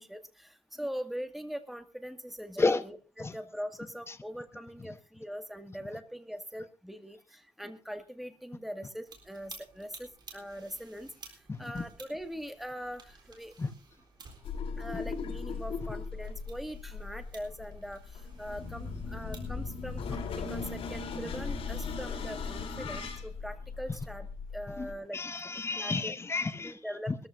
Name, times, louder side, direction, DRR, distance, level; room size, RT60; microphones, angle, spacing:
voice 1, 0.0-11.1 11.6-13.5 14.8-20.2 20.5-24.3 24.5-25.2 25.8-26.1 26.6-27.1, equal, ahead, 2.0 m, -41 dB
sound 1, 9.1-21.4, right 4 dB, 50° right, 3.9 m, -55 dB
voice 2, 11.5-11.8 13.6-13.7 24.8-26.8 27.1-27.2, left 3 dB, 25° left, 1.1 m, -31 dB
sound 2, 14.4-24.9, left 4 dB, 80° left, 5.8 m, -38 dB
22.0 x 14.0 x 2.7 m
cardioid pair, 90°, 10 cm